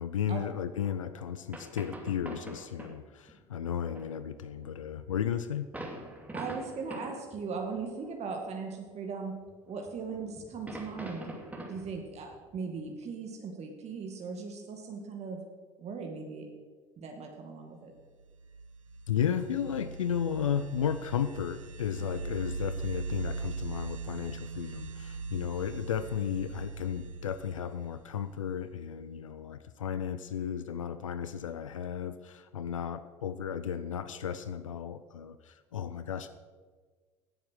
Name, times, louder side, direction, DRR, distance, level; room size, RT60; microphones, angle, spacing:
voice 1, 0.0-5.7 19.1-36.3, left 8 dB, 80° left, 12 dB, 0.5 m, -34 dB
sound 1, 0.8-1.0 1.3-1.4 1.5-3.0 3.3-3.4 3.9-7.5 7.8-8.1 8.9-9.5 9.9-13.0, right 1 dB, 10° right, 2.6 m, -44 dB
voice 2, 6.3-9.3 9.7-11.3 11.7-15.4 15.8-16.5 17.0-17.9, right 5 dB, 40° right, 2 dB, 2.1 m, -38 dB
sound 2, 18.2-28.7, right 4 dB, 90° right, 0.5 m, -40 dB
16.5 x 7.2 x 6.3 m, 1.5 s
figure-of-eight pair, 65°, 17 cm